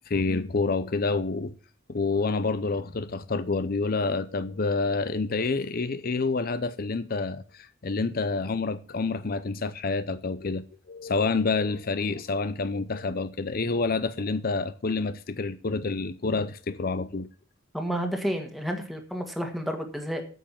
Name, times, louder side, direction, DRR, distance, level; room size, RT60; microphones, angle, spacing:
voice 1, 0.1-1.5 1.9-17.3, left 3 dB, 50° left, 0.6 m, -28 dB
voice 2, 17.7-20.2, equal, ahead, 1.7 m, -30 dB
8.9 x 7.6 x 7.4 m
head